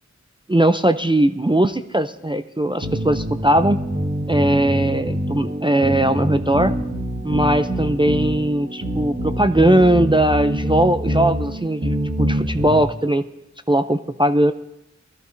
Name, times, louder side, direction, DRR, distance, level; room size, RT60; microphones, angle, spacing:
voice 1, 0.5-3.8 4.3-6.8 7.2-13.2 13.7-14.5, right 1 dB, 15° right, 9 dB, 0.4 m, -19 dB
sound 1, 2.8-12.8, right 1 dB, 40° right, 1.6 m, -25 dB
21.0 x 13.5 x 2.6 m, 0.85 s
wide cardioid pair, 40°, 30 cm